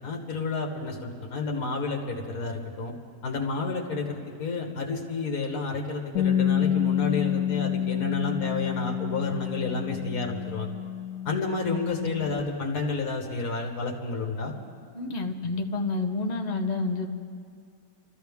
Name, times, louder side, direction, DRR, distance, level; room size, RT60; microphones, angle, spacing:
voice 1, 0.0-2.9 3.2-10.7 11.3-14.5, left 3 dB, 65° left, 1 dB, 1.8 m, -30 dB
Bass guitar, 6.2-12.4, left 10 dB, 85° left, 1.1 m, -28 dB
voice 2, 14.9-17.1, left 3 dB, 30° left, 4 dB, 0.8 m, -29 dB
27.0 x 13.5 x 3.6 m, 2.3 s
omnidirectional pair, 1.7 m